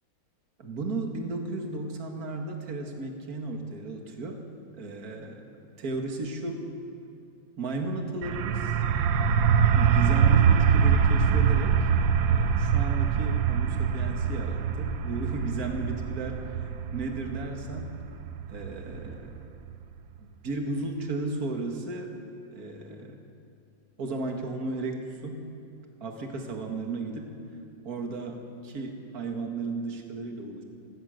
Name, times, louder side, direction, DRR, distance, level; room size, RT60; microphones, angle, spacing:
voice 1, 0.6-4.4 4.7-6.6 7.6-8.8 9.7-11.8 12.3-16.6 16.9-17.9 18.5-19.3 20.2-22.1 22.5-23.2 24.0-25.4 26.0-27.3 27.9-30.6, right 2 dB, 50° right, 3 dB, 2.3 m, -34 dB
sound 1, 8.2-19.7, right 7 dB, 85° right, 1.6 m, -24 dB
28.5 x 17.0 x 6.6 m, 2.6 s
omnidirectional pair, 2.1 m